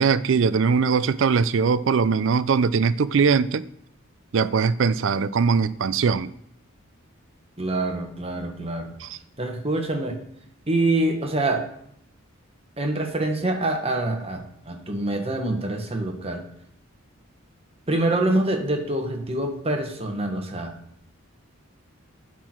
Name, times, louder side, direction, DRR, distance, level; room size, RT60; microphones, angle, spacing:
voice 1, 0.0-3.7 4.3-6.3 9.0-9.2, right 5 dB, 65° right, 0.4 m, -21 dB
voice 2, 7.6-8.9 9.4-10.2 10.7-11.7 12.8-16.4 17.9-20.7, right 2 dB, 30° right, 1.4 m, -25 dB
10.0 x 5.9 x 4.5 m
head